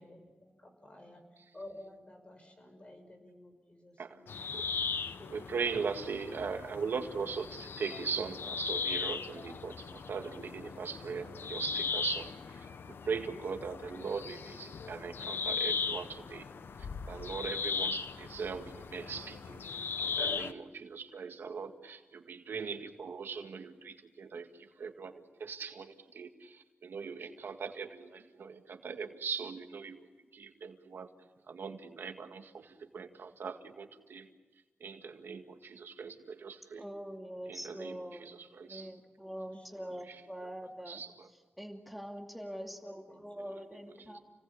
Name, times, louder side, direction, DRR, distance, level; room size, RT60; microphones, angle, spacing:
voice 1, 0.0-1.2 1.5-4.5 38.6-38.9 39.4-40.0 42.6-43.5 43.9-44.1, left 1 dB, 30° left, 5 dB, 6.1 m, -53 dB
sound 1, 4.3-20.5, left 5 dB, 85° left, 0.9 m, -38 dB
voice 2, 5.2-16.5 16.8-31.1 31.5-34.3 34.8-36.8 37.5-38.9 40.1-40.2 40.9-41.3 43.5-44.2, right 5 dB, 90° right, 5 dB, 2.0 m, -40 dB
voice 3, 36.8-38.3 38.7-41.0 41.6-44.2, equal, ahead, 2 dB, 2.6 m, -44 dB
30.0 x 18.5 x 8.6 m, 1.3 s
wide cardioid pair, 75°, 4 cm